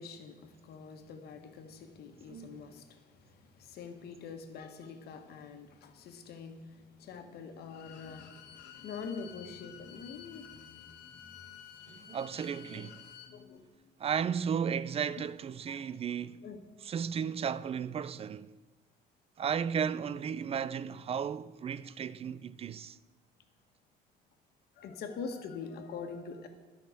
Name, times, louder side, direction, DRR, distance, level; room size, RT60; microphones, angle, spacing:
voice 1, 0.0-12.2 12.7-13.9 15.7-15.9 16.4-16.6 23.4-23.5 24.8-26.5, left 5 dB, 70° left, 1.5 m, -45 dB
voice 2, 2.3-2.7 11.9-13.0 14.0-16.4 16.8-18.6 19.4-23.0, right 7 dB, 35° right, 0.5 m, -34 dB
Bowed string instrument, 7.6-13.3, left 9 dB, 85° left, 1.2 m, -52 dB
12.0 x 5.9 x 8.1 m
cardioid pair, 110°, 17 cm